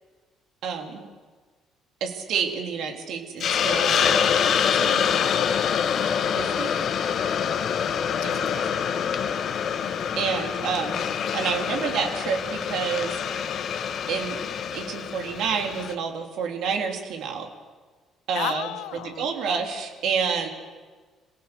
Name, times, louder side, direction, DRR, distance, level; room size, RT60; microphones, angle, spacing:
voice 1, 0.6-1.1 2.0-5.1 6.4-6.8 8.2-8.5 10.2-11.0 11.3-13.4 14.1-14.4 14.7-17.5 18.3-18.7 19.0-20.5, right 6 dB, 65° right, 3 dB, 3.4 m, -29 dB
Hiss, 3.4-15.9, left 7 dB, 55° left, 1.5 m, -25 dB
voice 2, 8.3-8.7 9.8-10.1 11.2-11.3 18.3-19.3, left 16 dB, 70° left, 17 dB, 0.7 m, -35 dB
26.5 x 17.5 x 7.0 m, 1.4 s
hypercardioid pair, 50°, 0 cm